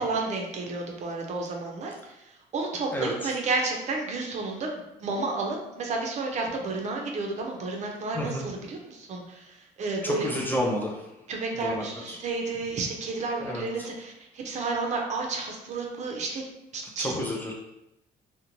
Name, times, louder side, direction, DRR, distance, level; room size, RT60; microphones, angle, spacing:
voice 1, 0.0-10.3 11.3-16.4 16.7-17.1, right 3 dB, 45° right, 1 dB, 0.5 m, -31 dB
voice 2, 2.9-3.3 8.1-8.5 10.0-11.1 11.5-12.2 13.4-13.7 17.0-17.5, left 1 dB, 10° left, -2 dB, 0.4 m, -30 dB
2.5 x 2.1 x 2.9 m, 0.88 s
cardioid pair, 125°, 17 cm